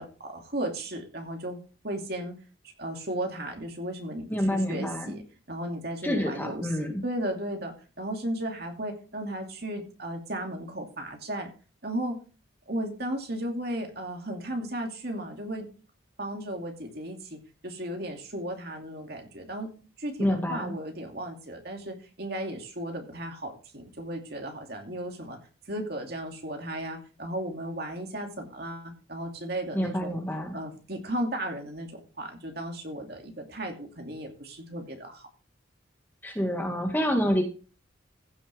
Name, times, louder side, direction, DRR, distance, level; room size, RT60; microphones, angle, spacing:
voice 1, 0.0-2.4 2.8-11.5 11.8-12.2 12.7-15.7 16.2-19.7 20.0-25.4 25.7-30.1 30.5-35.3, right 1 dB, 50° right, 3 dB, 2.6 m, -35 dB
voice 2, 4.3-5.2 6.0-7.0 20.2-20.7 29.7-30.6 36.2-37.4, equal, 10° left, 2 dB, 2.0 m, -27 dB
15.5 x 7.2 x 3.5 m, 0.35 s
head